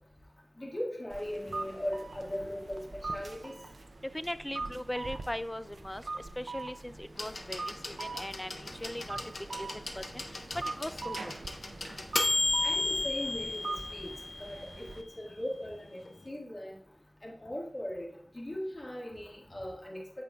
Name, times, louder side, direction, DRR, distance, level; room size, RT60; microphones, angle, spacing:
voice 1, 0.6-2.8 3.1-3.5 12.6-14.1 14.4-14.7 15.0-16.0 16.3-16.8 17.2-18.1 18.3-20.0, left 1 dB, 45° left, -3 dB, 1.8 m, -38 dB
sound 1, 1.1-15.0, right 3 dB, 85° right, 0.5 m, -42 dB
voice 2, 4.1-6.0 6.4-9.2 9.6-9.7 10.0-10.2 10.5-11.3, left 1 dB, 15° left, 13 dB, 0.3 m, -39 dB
sound 2, 7.2-14.9 16.1-16.2, left 2 dB, 85° left, 0.6 m, -34 dB
8.3 x 6.1 x 2.3 m, 0.62 s
wide cardioid pair, 60°, 0 cm